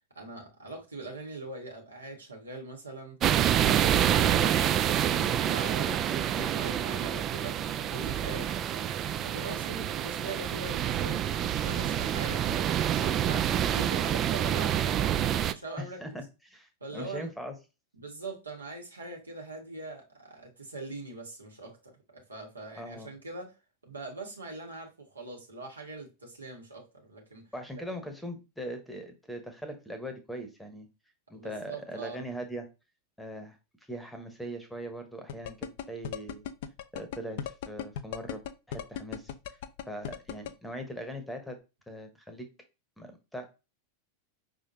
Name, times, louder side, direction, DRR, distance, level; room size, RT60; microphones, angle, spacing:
voice 1, 0.1-3.2 3.6-7.6 7.9-8.9 9.2-11.3 11.6-16.0 16.8-17.3 18.0-23.5 23.8-27.5 31.3-32.2, right 2 dB, 75° right, 1.6 m, -42 dB
sound 1, 3.2-15.5, right 10 dB, 30° right, 0.3 m, -27 dB
voice 2, 15.8-17.5 22.8-23.1 27.5-30.9 31.3-32.7 33.2-33.6 33.9-36.4 36.9-38.4 38.7-39.6 39.8-41.6 41.9-42.5 43.0-43.5, equal, 5° left, 1.0 m, -40 dB
sound 2, 35.3-40.5, left 9 dB, 50° left, 0.5 m, -36 dB
5.4 x 3.6 x 2.7 m
figure-of-eight pair, 90°, 0 cm